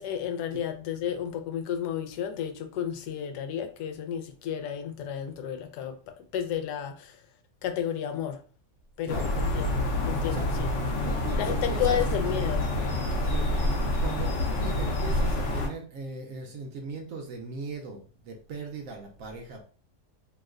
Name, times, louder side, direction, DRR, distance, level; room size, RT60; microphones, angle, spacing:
voice 1, 0.0-6.0 6.3-7.2 7.6-8.4 9.0-10.7 11.4-12.7, left 9 dB, 80° left, 1.1 m, -32 dB
voice 2, 9.0-9.4 10.0-10.5 11.0-12.0 13.2-13.7 14.0-19.6, right 4 dB, 65° right, 0.9 m, -39 dB
sound 1, 9.1-15.7, left 1 dB, 60° left, 0.9 m, -27 dB
3.0 x 2.1 x 3.5 m
omnidirectional pair, 1.7 m